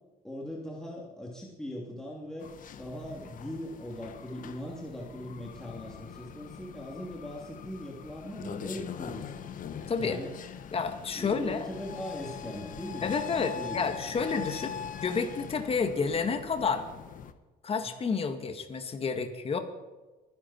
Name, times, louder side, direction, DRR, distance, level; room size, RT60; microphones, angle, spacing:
voice 1, 0.2-9.5 10.0-10.4 11.1-13.8 14.1-14.3 14.7-14.8 17.8-17.9, equal, 5° left, -3 dB, 3.0 m, -40 dB
sound 1, 2.4-17.3, left 8 dB, 50° left, 1.3 m, -42 dB
voice 2, 9.9-10.2 10.7-11.7 13.0-16.9 17.6-19.6, left 5 dB, 35° left, 7 dB, 1.8 m, -30 dB
23.5 x 10.5 x 4.5 m, 1.2 s
cardioid pair, 110°, 17 cm